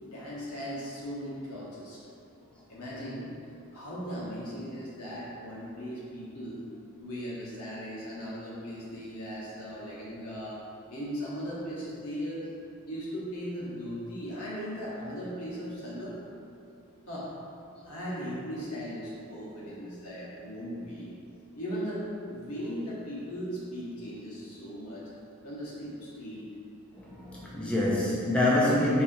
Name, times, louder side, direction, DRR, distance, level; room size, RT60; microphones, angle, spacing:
voice 1, 0.0-2.0 2.7-3.3 3.7-6.6 7.0-10.6 10.9-12.4 12.9-16.2 17.1-17.3 17.8-21.1 21.5-25.1 25.4-26.5, equal, 80° left, -7 dB, 1.0 m, -38 dB
voice 2, 27.0-29.0, left 1 dB, 5° left, -7 dB, 0.3 m, -26 dB
4.2 x 2.5 x 2.6 m, 2.6 s
head